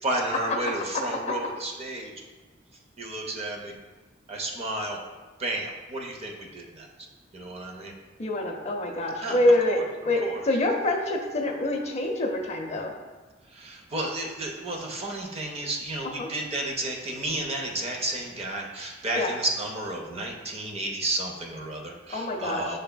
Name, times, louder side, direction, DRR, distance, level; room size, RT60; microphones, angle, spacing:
voice 1, 0.0-2.1 3.0-3.7 4.3-5.0 5.4-6.9 7.3-7.9 9.2-9.8 10.2-10.4 13.5-22.8, right 1 dB, 35° right, 0 dB, 0.6 m, -32 dB
voice 2, 8.2-9.8 10.1-12.9 16.2-16.3 19.1-19.3 22.1-22.8, left 1 dB, 35° left, 1 dB, 0.5 m, -26 dB
6.5 x 3.3 x 2.2 m, 1.2 s
head